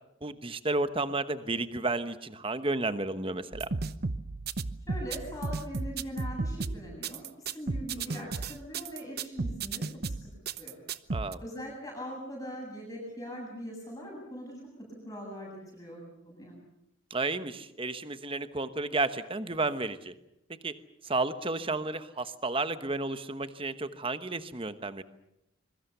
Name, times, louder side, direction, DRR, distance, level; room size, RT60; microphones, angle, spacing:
voice 1, 0.2-3.7 8.1-8.3 11.1-11.4 17.1-20.1 20.5-20.8 21.0-25.0, right 3 dB, 25° right, 11 dB, 1.1 m, -32 dB
sound 1, 3.5-11.3, right 3 dB, 45° right, 0.8 m, -34 dB
voice 2, 4.9-10.1 10.5-10.8 11.4-14.6 15.1-16.6, equal, 15° left, -3 dB, 7.7 m, -41 dB
25.5 x 23.0 x 6.9 m, 0.85 s
head